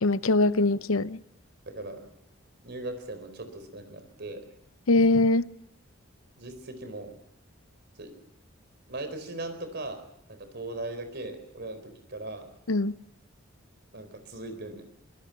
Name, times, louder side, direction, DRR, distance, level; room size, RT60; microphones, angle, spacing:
voice 1, 0.0-1.2 4.9-5.5 12.7-13.0, left 2 dB, 85° left, 0.7 m, -22 dB
voice 2, 1.7-2.0 2.6-4.4 6.4-7.1 8.0-8.1 8.9-10.0 10.3-12.5 13.9-14.9, right 2 dB, 55° right, 4.2 m, -38 dB
24.5 x 20.0 x 5.8 m
head